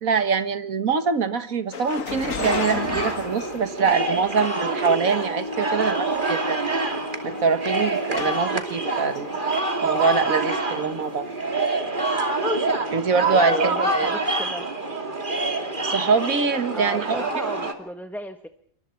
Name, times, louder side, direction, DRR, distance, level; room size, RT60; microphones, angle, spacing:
voice 1, 0.0-6.6 7.2-9.3 9.8-11.3 12.9-14.1 15.8-17.2, right 5 dB, 80° right, 11 dB, 2.0 m, -24 dB
sound 1, 1.7-4.3 5.1-5.2 6.1-6.2 6.5-6.8 7.4-8.7 9.2-9.7 10.0-10.1 11.3-11.4, left 5 dB, 70° left, 1.9 m, -33 dB
sound 2, 2.4-17.7, right 2 dB, 35° right, 2.7 m, -26 dB
sound 3, 5.2-8.2, left 4 dB, 30° left, 3.6 m, -37 dB
voice 2, 13.3-14.6 16.7-18.5, equal, ahead, 7 dB, 1.1 m, -33 dB
27.5 x 24.0 x 4.5 m, 0.62 s
omnidirectional pair, 1.4 m